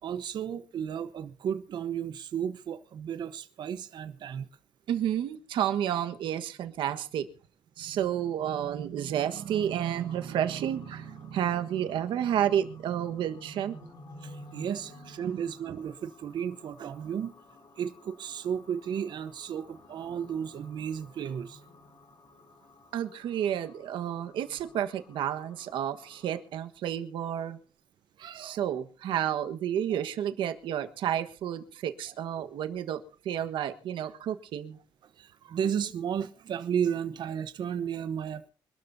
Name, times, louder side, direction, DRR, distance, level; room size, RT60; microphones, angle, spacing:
voice 1, 0.0-4.5 6.9-7.0 10.9-11.0 14.2-17.3 17.8-21.6 28.2-28.7 29.9-30.0 32.4-32.5 33.3-33.5 34.1-34.3 35.0-38.5, right 8 dB, 65° right, 1.0 m, -34 dB
voice 2, 4.9-7.3 7.8-13.9 15.2-15.4 22.9-27.6 28.3-34.8, right 10 dB, 90° right, 1.4 m, -31 dB
sound 1, 9.2-26.4, left 2 dB, 50° left, 5.2 m, -54 dB
25.5 x 13.0 x 2.7 m
cardioid pair, 125°, 8 cm